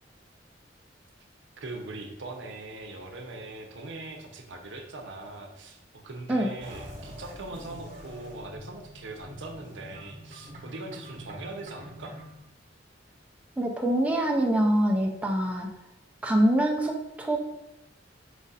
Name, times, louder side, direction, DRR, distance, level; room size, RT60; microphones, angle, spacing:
voice 1, 1.6-12.2, right 2 dB, 75° right, 3 dB, 0.7 m, -41 dB
sound 1, 6.6-12.4, equal, 45° right, 1.0 m, -45 dB
voice 2, 13.6-15.7 16.2-17.4, right 1 dB, 10° right, 0 dB, 0.5 m, -24 dB
5.0 x 2.5 x 3.9 m, 0.89 s
head